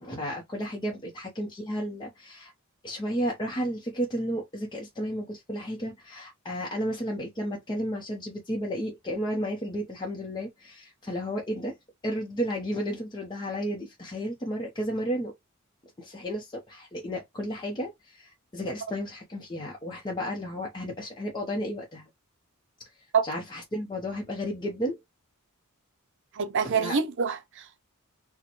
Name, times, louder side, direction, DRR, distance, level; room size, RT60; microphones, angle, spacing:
voice 1, 0.0-2.5 2.8-11.8 12.0-15.3 16.0-22.0 23.2-25.0 26.6-27.0, equal, 20° left, 0.7 m, -33 dB
voice 2, 26.4-27.8, right 6 dB, 55° right, 0.6 m, -26 dB
4.1 x 2.2 x 2.9 m
head